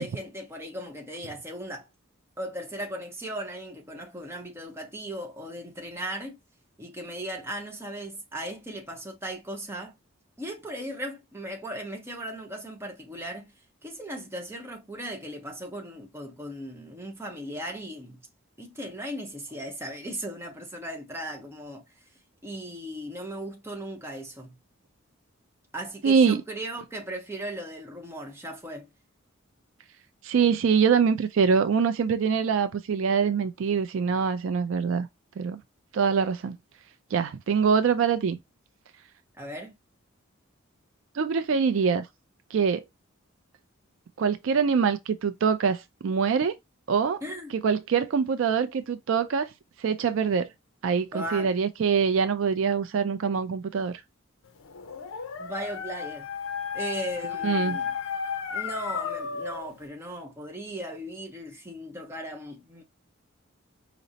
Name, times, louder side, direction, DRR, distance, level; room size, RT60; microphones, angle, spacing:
voice 1, 0.0-1.9 2.4-6.4 6.8-9.9 10.4-13.5 13.8-18.2 18.6-21.8 22.4-24.5 25.7-28.9 39.4-39.8 47.2-47.5 51.1-51.5 55.4-56.3 56.7-57.9 58.5-62.8, right 1 dB, 10° right, 0.8 m, -37 dB
voice 2, 26.0-26.4 30.2-35.1 35.4-35.6 35.9-36.6 37.1-38.4 41.1-42.1 42.5-42.8 44.2-46.6 46.9-47.2 47.5-49.5 49.8-50.5 50.8-54.0 57.4-57.8, right 6 dB, 70° right, 0.4 m, -24 dB
Dog, 54.6-59.7, left 6 dB, 80° left, 0.5 m, -33 dB
5.0 x 2.0 x 2.7 m
head